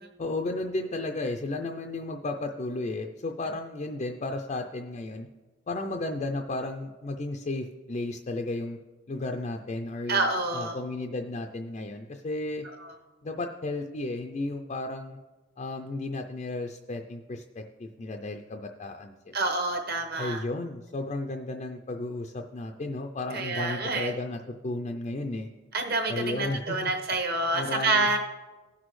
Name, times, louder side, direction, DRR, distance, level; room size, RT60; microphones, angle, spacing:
voice 1, 0.2-5.3 5.7-8.8 9.1-10.3 10.5-12.6 13.2-15.2 15.6-19.4 20.2-25.5 26.1-26.9 27.5-28.2, left 2 dB, 30° left, 3 dB, 0.4 m, -33 dB
voice 2, 10.1-10.8 12.8-12.9 19.3-20.4 23.3-24.1 25.7-28.2, right 3 dB, 45° right, 3 dB, 1.1 m, -27 dB
16.5 x 6.1 x 3.1 m, 1.3 s
head